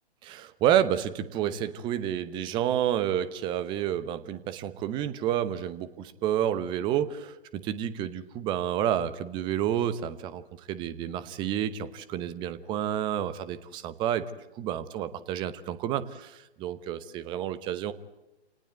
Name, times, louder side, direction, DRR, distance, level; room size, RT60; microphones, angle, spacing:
voice 1, 0.2-14.3 14.6-17.9, right 10 dB, 15° right, 14 dB, 0.9 m, -29 dB
28.5 x 19.0 x 9.2 m, 1.0 s
figure-of-eight pair, 135°, 33 cm